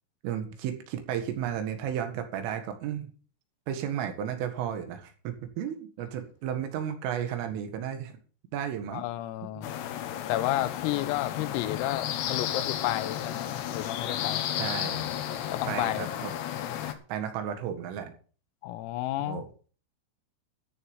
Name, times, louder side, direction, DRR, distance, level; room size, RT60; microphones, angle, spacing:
voice 1, 0.2-3.1 3.7-8.2 8.5-9.0 9.6-9.7 14.6-15.1 15.7-16.3 16.8-18.1 19.2-19.5, right 9 dB, 75° right, 4.2 m, -33 dB
voice 2, 8.9-9.7 10.3-14.4 15.5-16.1 18.6-19.5, left 15 dB, 85° left, 3.6 m, -31 dB
sound 1, 9.6-16.9, left 11 dB, 70° left, 2.8 m, -33 dB
13.5 x 6.8 x 7.1 m
omnidirectional pair, 5.9 m